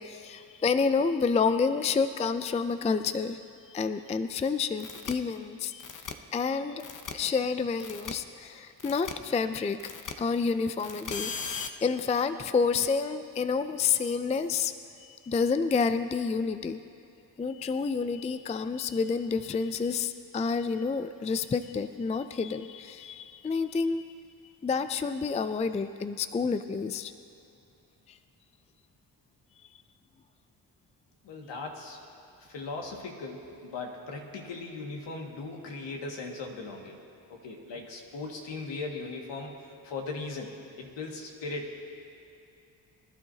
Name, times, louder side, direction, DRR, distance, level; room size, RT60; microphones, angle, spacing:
voice 1, 0.0-3.4 3.7-5.8 6.3-9.9 10.2-14.7 15.0-16.8 17.4-24.0 24.6-27.1 28.1-28.2, left 5 dB, 15° left, 11 dB, 0.4 m, -29 dB
sound 1, 4.8-5.1 5.8-6.1 6.8-7.1 7.8-8.1 8.8-9.1 9.8-10.1 10.8-11.7, left 6 dB, 40° left, 0.9 m, -37 dB
voice 2, 31.2-32.0 32.4-37.0 37.3-41.8, left 3 dB, 65° left, 1 dB, 2.1 m, -38 dB
24.0 x 12.0 x 2.9 m, 2.7 s
supercardioid pair, 65°, 45 cm